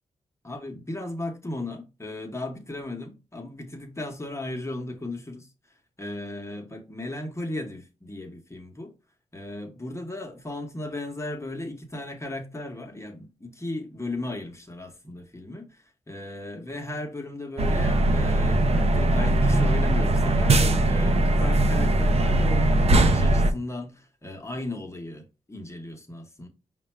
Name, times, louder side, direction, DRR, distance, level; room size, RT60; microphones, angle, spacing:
voice 1, 0.4-5.5 6.0-8.9 9.3-26.5, left 1 dB, 20° left, 0.9 m, -36 dB
sound 1, 17.6-23.5, right 1 dB, 50° right, 0.6 m, -20 dB
5.0 x 2.2 x 4.3 m
cardioid pair, 75°, 14 cm